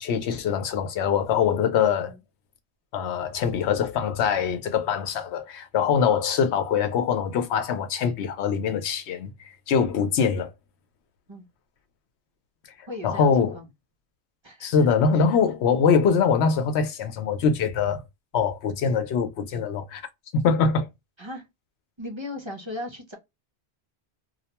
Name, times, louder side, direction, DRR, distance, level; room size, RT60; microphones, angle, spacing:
voice 1, 0.0-2.1 2.9-9.3 9.7-10.5 13.0-13.6 14.6-18.0 18.3-20.0 20.3-20.9, left 6 dB, 85° left, 0.9 m, -23 dB
voice 2, 12.9-13.7 14.4-14.9 21.2-21.4 22.0-23.2, left 1 dB, 35° right, 0.5 m, -37 dB
2.3 x 2.1 x 2.7 m
omnidirectional pair, 1.1 m